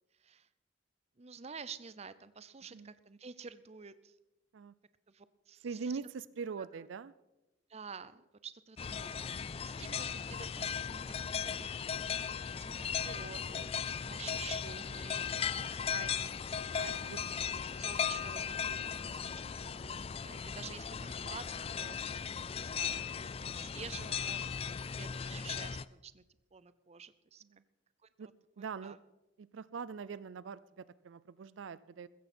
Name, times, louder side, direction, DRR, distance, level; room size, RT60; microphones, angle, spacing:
voice 1, 1.2-4.2 5.1-5.9 6.6-6.9 7.7-12.2 12.5-13.7 14.0-16.3 16.6-17.1 17.4-17.5 17.8-26.2 26.5-27.4 28.0-28.3 28.6-29.0, right 6 dB, 35° right, 15 dB, 0.6 m, -50 dB
voice 2, 5.6-7.1 17.0-17.2 17.8-17.9 28.2-28.3 28.6-29.0 29.4-32.1, right 5 dB, 80° right, 18 dB, 0.4 m, -42 dB
sound 1, 8.8-25.8, left 7 dB, 30° left, 0.4 m, -37 dB
15.0 x 14.5 x 4.4 m, 0.99 s
head